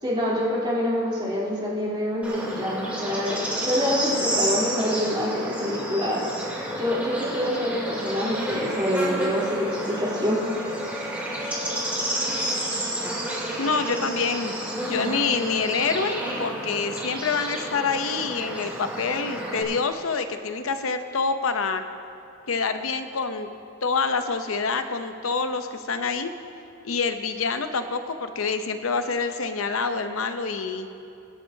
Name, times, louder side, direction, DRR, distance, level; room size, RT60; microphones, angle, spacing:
voice 1, 0.0-6.2 6.7-10.4, left 1 dB, 25° right, -7 dB, 3.4 m, -26 dB
Bird / Insect, 2.2-19.6, right 1 dB, 5° right, 2.4 m, -30 dB
voice 2, 13.6-14.5 14.9-21.8 22.5-23.5 23.8-26.3 26.8-30.9, left 4 dB, 85° left, 8 dB, 0.7 m, -26 dB
24.0 x 10.0 x 2.7 m, 2.8 s
head